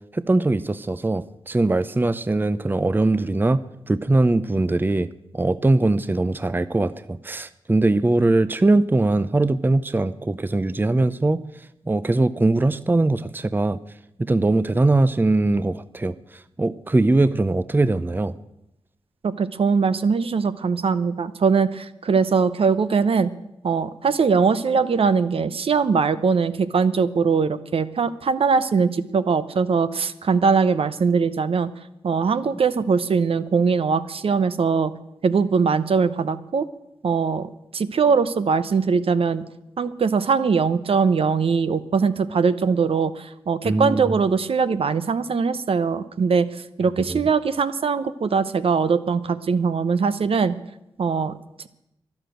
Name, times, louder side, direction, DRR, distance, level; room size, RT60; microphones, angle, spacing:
voice 1, 0.1-3.6 3.9-11.4 11.9-13.8 14.2-16.2 16.6-18.3 43.6-44.1 47.1-47.3, right 2 dB, 20° right, 15 dB, 0.6 m, -21 dB
voice 2, 19.2-23.3 23.6-31.7 32.0-34.9 35.2-36.6 37.0-39.4 39.8-46.5 46.8-50.6 51.0-51.3, right 5 dB, 60° right, 12 dB, 0.8 m, -21 dB
12.0 x 11.0 x 7.8 m, 0.86 s
cardioid pair, 55°, 11 cm